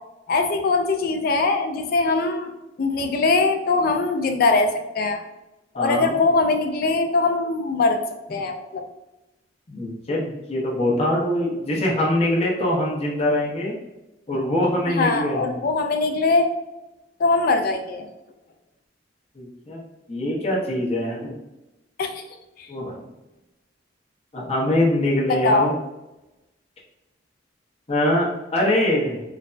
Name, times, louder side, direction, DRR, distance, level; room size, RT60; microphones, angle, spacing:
voice 1, 0.3-2.5 2.8-5.2 5.7-8.0 8.3-8.8 14.9-16.5 17.2-18.1 22.0-22.1 22.6-22.7 25.3-25.7, left 3 dB, 50° left, 6 dB, 0.3 m, -21 dB
voice 2, 9.7-13.7 14.3-15.5 19.4-19.8 20.1-21.3 22.7-23.0 24.3-25.8 27.9-29.2, left 1 dB, 35° left, -4 dB, 0.7 m, -23 dB
3.3 x 2.1 x 2.5 m, 0.98 s
head